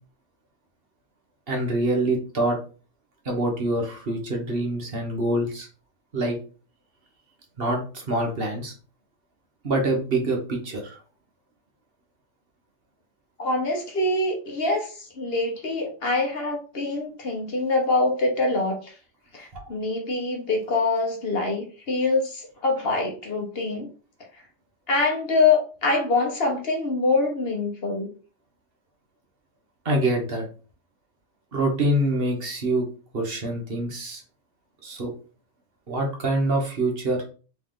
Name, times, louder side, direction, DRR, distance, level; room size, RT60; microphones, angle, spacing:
voice 1, 1.5-2.6 3.2-5.7 6.1-6.4 7.6-8.7 9.6-11.0 29.8-30.5 31.5-32.8 33.1-34.2 34.8-35.1 35.9-37.2, right 1 dB, 50° right, 1 dB, 1.2 m, -25 dB
voice 2, 13.4-18.9 19.3-23.9 24.9-28.1, left 3 dB, 55° left, 0 dB, 1.2 m, -24 dB
3.5 x 3.1 x 3.7 m, 0.37 s
omnidirectional pair, 1.3 m